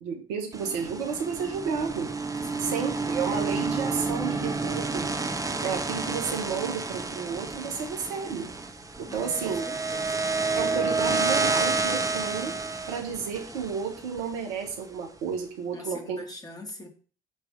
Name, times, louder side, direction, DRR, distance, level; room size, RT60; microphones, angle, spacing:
voice 1, 0.0-2.1 2.6-5.1 5.6-8.5 9.0-9.6 10.5-12.5 12.9-16.2, right 6 dB, 75° right, 1.5 m, -32 dB
sound 1, 0.5-14.7, right 3 dB, 20° right, 1.3 m, -30 dB
voice 2, 9.1-10.3 15.7-16.9, left 1 dB, 20° left, 2.3 m, -43 dB
8.0 x 3.5 x 6.2 m
hypercardioid pair, 50°, 18 cm